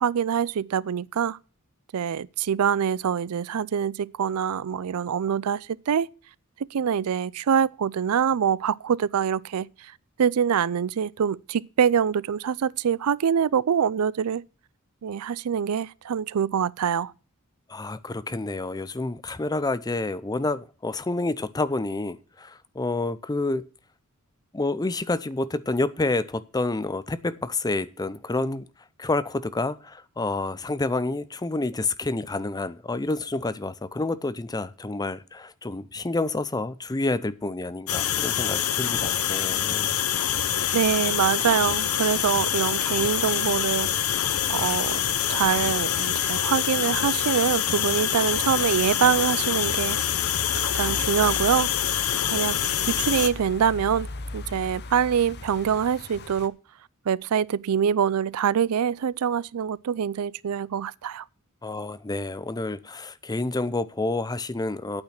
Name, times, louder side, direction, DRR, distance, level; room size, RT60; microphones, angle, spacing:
voice 1, 0.0-1.4 1.9-6.1 6.7-9.9 10.2-14.4 15.0-17.1 40.7-43.9 44.5-45.0 45.3-50.0 50.6-52.6 52.9-54.1 54.3-56.6 57.1-61.2, right 7 dB, 90° right, 0.4 m, -25 dB
voice 2, 17.7-23.6 24.5-28.7 29.0-39.9 61.6-65.0, left 2 dB, 15° left, 0.5 m, -29 dB
sound 1, 37.9-53.3, left 10 dB, 75° left, 0.8 m, -25 dB
sound 2, 43.7-56.5, left 3 dB, 50° left, 0.9 m, -40 dB
8.9 x 8.7 x 5.9 m
head